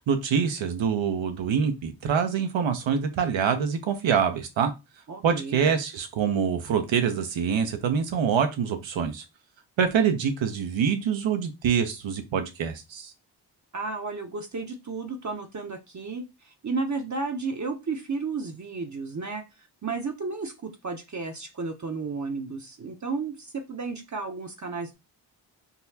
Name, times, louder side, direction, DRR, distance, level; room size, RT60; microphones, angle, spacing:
voice 1, 0.0-4.7 5.2-9.2 9.8-13.1, right 7 dB, 75° right, 7 dB, 0.8 m, -25 dB
voice 2, 5.1-5.7 13.7-19.4 19.8-24.9, right 4 dB, 40° right, 3 dB, 0.7 m, -33 dB
3.9 x 2.2 x 2.7 m, 0.25 s
cardioid pair, 50°, 46 cm